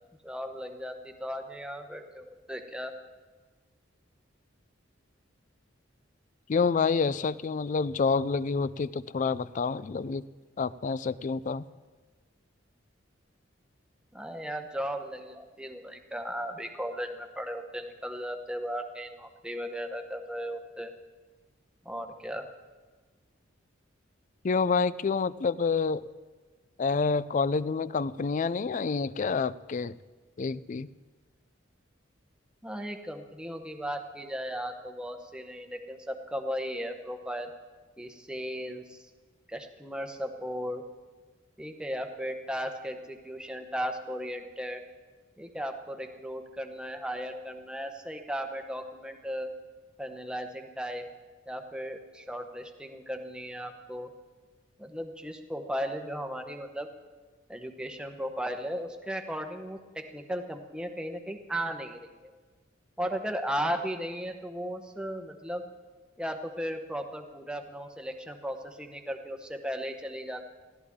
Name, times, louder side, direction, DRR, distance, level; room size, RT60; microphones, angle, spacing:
voice 1, 0.2-2.9 14.1-20.9 21.8-22.4 32.6-37.5 38.0-39.1 39.5-40.8 41.6-44.8 45.4-49.5 50.0-51.0 51.5-54.1 54.8-56.9 57.5-62.1 63.0-65.6 66.2-70.4, equal, 5° right, 5 dB, 1.0 m, -36 dB
voice 2, 6.5-10.2 10.6-11.6 24.4-26.1 26.8-30.0 30.4-30.9, left 4 dB, 40° left, 18 dB, 0.4 m, -28 dB
20.0 x 14.5 x 3.6 m, 1.3 s
head